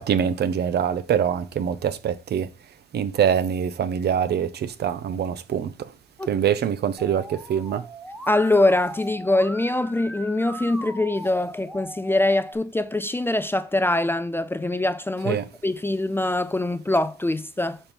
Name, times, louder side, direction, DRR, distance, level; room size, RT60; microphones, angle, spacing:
voice 1, 0.0-2.5 2.9-5.9 6.2-7.8 15.3-15.5, right 8 dB, 55° right, 0.6 m, -24 dB
Musical instrument, 7.0-12.5, right 1 dB, 5° right, 1.0 m, -39 dB
voice 2, 8.3-17.8, left 2 dB, 10° left, 0.3 m, -23 dB
4.3 x 4.3 x 5.2 m
cardioid pair, 90°, 20 cm